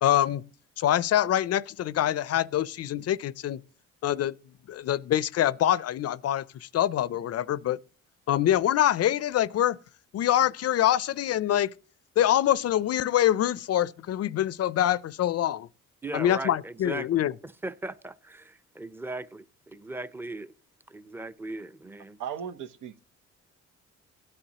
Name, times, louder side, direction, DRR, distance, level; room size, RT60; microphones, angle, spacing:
voice 1, 0.0-0.4 0.8-3.6 4.0-4.3 4.7-7.8 8.3-9.8 10.1-11.7 12.2-15.7 16.1-17.3, left 11 dB, 55° left, 0.5 m, -25 dB
voice 2, 16.0-20.5 20.9-22.2, right 2 dB, 5° right, 0.6 m, -38 dB
voice 3, 22.2-23.0, right 8 dB, 80° right, 0.8 m, -36 dB
16.5 x 9.9 x 2.8 m
cardioid pair, 90°, 30 cm